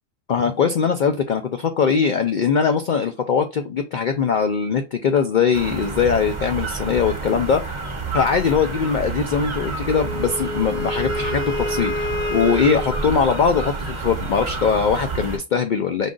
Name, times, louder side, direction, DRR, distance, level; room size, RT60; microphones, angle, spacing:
voice 1, 0.3-7.8 8.1-16.1, left 6 dB, 60° left, 6 dB, 0.5 m, -21 dB
sound 1, 5.5-15.4, right 3 dB, 30° right, 0.7 m, -29 dB
Wind instrument woodwind instrument, 9.9-13.1, left 1 dB, 5° left, 0.9 m, -28 dB
5.4 x 2.5 x 3.7 m, 0.26 s
omnidirectional pair, 1.3 m